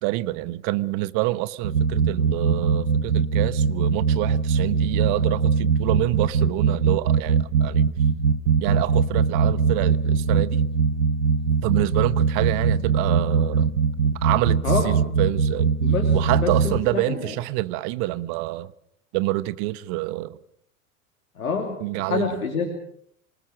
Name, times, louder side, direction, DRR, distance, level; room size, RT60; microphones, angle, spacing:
voice 1, 0.0-7.9 8.6-10.6 11.6-13.8 14.2-15.7 16.1-18.7 19.1-20.4 21.8-22.4, right 18 dB, 45° right, 1.1 m, -27 dB
sound 1, 1.6-16.8, right 5 dB, 80° right, 1.0 m, -21 dB
voice 2, 15.8-17.0 21.4-22.7, left 5 dB, 75° left, 3.0 m, -27 dB
26.5 x 19.5 x 6.3 m
figure-of-eight pair, 85°, 41 cm